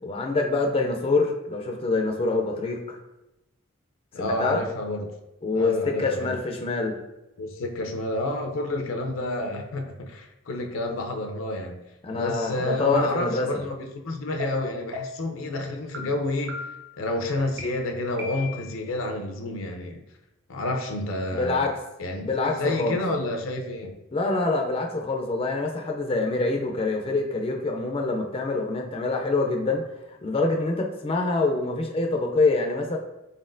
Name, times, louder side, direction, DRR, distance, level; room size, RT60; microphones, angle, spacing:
voice 1, 0.0-3.0 4.2-4.6 5.4-7.0 12.0-13.6 21.3-21.8 22.2-23.0 24.1-29.8 30.1-33.0, left 3 dB, 30° left, 2 dB, 0.4 m, -25 dB
voice 2, 4.1-5.1 5.5-6.3 7.4-11.8 12.1-16.6 17.0-20.0 20.5-21.6 22.0-23.9, left 2 dB, 90° left, 3 dB, 0.6 m, -29 dB
sound 1, 14.4-14.5 14.9-15.3 15.9-16.0 16.5-16.9 17.6-17.7 18.2-18.8, left 2 dB, 55° right, 0.6 m, -37 dB
4.1 x 3.7 x 2.5 m, 0.95 s
head